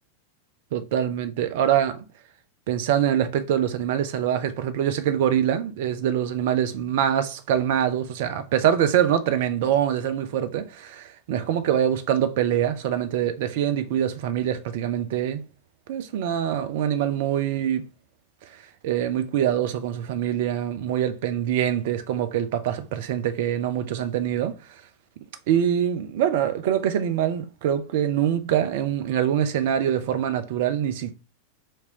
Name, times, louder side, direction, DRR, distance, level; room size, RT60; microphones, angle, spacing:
voice 1, 0.7-2.0 2.7-15.4 15.9-17.8 18.4-24.8 25.5-31.1, right 10 dB, 50° right, 0.5 m, -24 dB
4.4 x 2.7 x 2.9 m
figure-of-eight pair, 90°, 0 cm